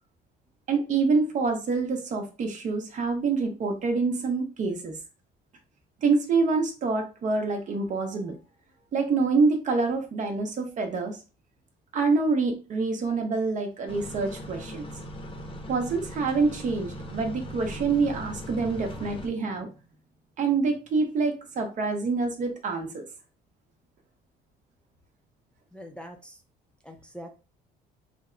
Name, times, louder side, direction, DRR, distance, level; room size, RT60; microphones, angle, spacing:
voice 1, 0.7-5.0 6.0-8.4 8.9-11.2 11.9-14.9 15.7-19.7 20.4-23.1, right 4 dB, 50° right, 4 dB, 0.9 m, -26 dB
sound 1, 13.9-19.3, equal, 30° left, 0.8 m, -39 dB
voice 2, 25.7-26.4 26.8-27.3, equal, 5° left, 3 dB, 0.6 m, -43 dB
3.4 x 2.2 x 3.8 m, 0.32 s
cardioid pair, 110°, 17 cm